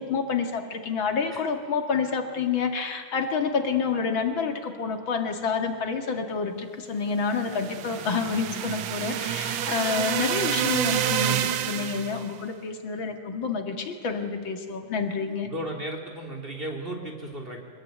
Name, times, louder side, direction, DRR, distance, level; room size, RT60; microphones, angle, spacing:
voice 1, 0.0-15.5, left 5 dB, 70° left, 5 dB, 2.7 m, -28 dB
sound 1, 7.3-12.3, right 10 dB, 70° right, 1.6 m, -28 dB
voice 2, 15.4-17.6, right 1 dB, 25° right, 1 dB, 3.6 m, -35 dB
25.0 x 21.5 x 9.4 m, 2.1 s
omnidirectional pair, 2.2 m